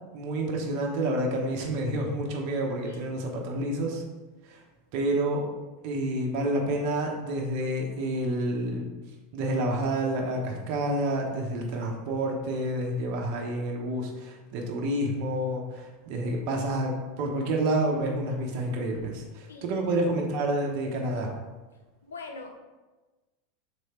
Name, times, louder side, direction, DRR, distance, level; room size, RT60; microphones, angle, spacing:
voice 1, 0.1-4.0 4.4-4.6 4.9-5.4 5.8-8.9 9.3-21.3, right 1 dB, 60° right, 0 dB, 0.9 m, -29 dB
voice 2, 22.0-22.6, left 3 dB, 90° left, 3 dB, 0.6 m, -42 dB
3.4 x 3.2 x 4.3 m, 1.2 s
hypercardioid pair, 100°, 0 cm